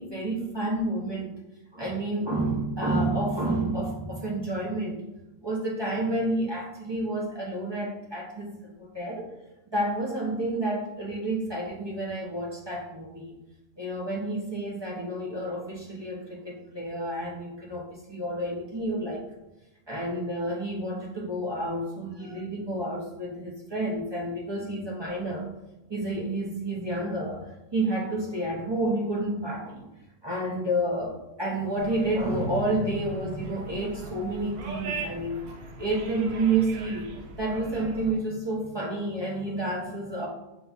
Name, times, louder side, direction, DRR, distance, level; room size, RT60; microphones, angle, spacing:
voice 1, 0.0-1.3 1.7-5.0 5.4-9.3 9.7-13.4 13.8-19.2 19.9-25.5 25.9-29.9 30.2-35.4 35.8-40.3, right 2 dB, 40° right, -4 dB, 0.3 m, -30 dB
sound 1, 31.8-38.1, right 3 dB, 75° right, 1.1 m, -41 dB
6.6 x 3.0 x 2.3 m, 0.95 s
omnidirectional pair, 1.6 m